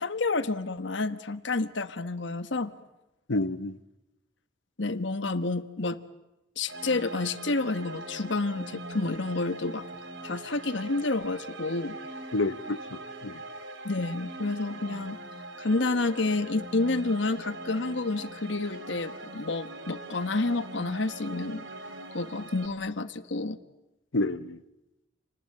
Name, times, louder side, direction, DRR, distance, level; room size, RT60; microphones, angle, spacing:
voice 1, 0.0-2.7 4.8-6.0 6.6-9.8 10.2-12.0 13.8-15.2 15.6-21.6 22.1-23.6, left 3 dB, 70° left, 1.3 m, -29 dB
voice 2, 3.3-3.8 12.3-13.4 24.1-24.6, left 2 dB, 85° left, 1.0 m, -29 dB
sound 1, 6.7-22.7, right 2 dB, 75° right, 2.7 m, -42 dB
29.5 x 19.5 x 8.9 m
head